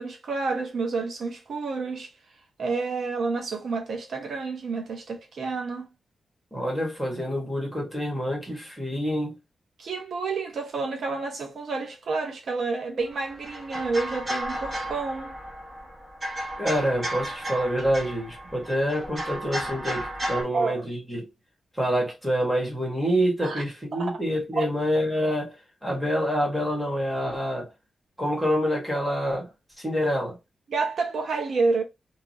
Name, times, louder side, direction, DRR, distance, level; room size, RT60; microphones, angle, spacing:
voice 1, 0.0-2.1 2.6-5.9 9.8-15.3 20.5-20.9 23.4-23.6 23.9-24.2 24.5-24.7 30.7-31.8, right 4 dB, 60° right, 0.6 m, -29 dB
voice 2, 6.5-9.3 16.6-21.3 21.8-25.5 25.8-27.7 28.2-29.5 29.8-30.4, equal, 5° right, 1.3 m, -27 dB
sound 1, 13.0-20.4, right 1 dB, 25° right, 1.0 m, -34 dB
2.8 x 2.3 x 2.7 m
wide cardioid pair, 170°, 0 cm